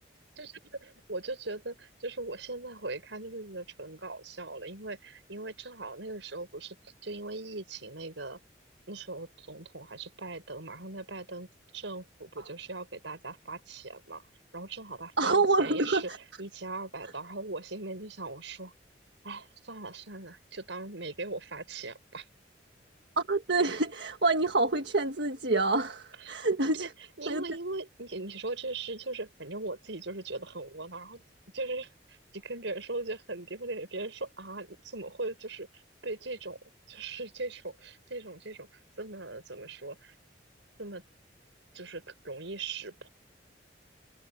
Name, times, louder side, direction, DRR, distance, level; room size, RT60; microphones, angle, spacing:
voice 1, 0.4-8.4 8.9-11.5 11.7-14.2 14.5-16.1 16.4-18.7 19.2-22.3 26.2-26.4 26.8-26.9 27.2-31.2 31.5-36.6 36.9-38.7 39.0-40.2 40.8-41.0 41.7-43.1, right 3 dB, 85° right, 5.2 m, -39 dB
voice 2, 15.2-16.0 23.2-26.9 27.3-27.4, right 3 dB, 65° right, 1.6 m, -27 dB
head